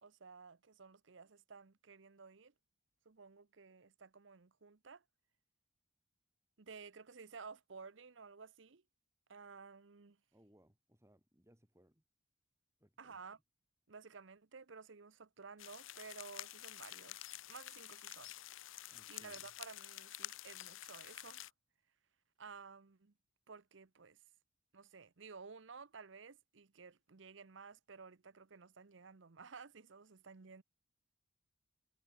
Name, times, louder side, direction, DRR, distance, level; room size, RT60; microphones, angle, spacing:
voice 1, 0.0-2.5 3.0-5.0 6.6-8.8 9.3-10.2 13.0-13.4 13.9-17.2 17.5-18.3 19.1-21.5 22.4-23.1 23.5-24.2 24.7-30.6, right 5 dB, 65° right, 0.8 m, -54 dB
voice 2, 10.3-12.0 12.8-13.2 18.9-19.5, equal, 15° right, 4.3 m, -68 dB
sound 1, 15.6-21.5, left 14 dB, 80° left, 0.7 m, -50 dB
head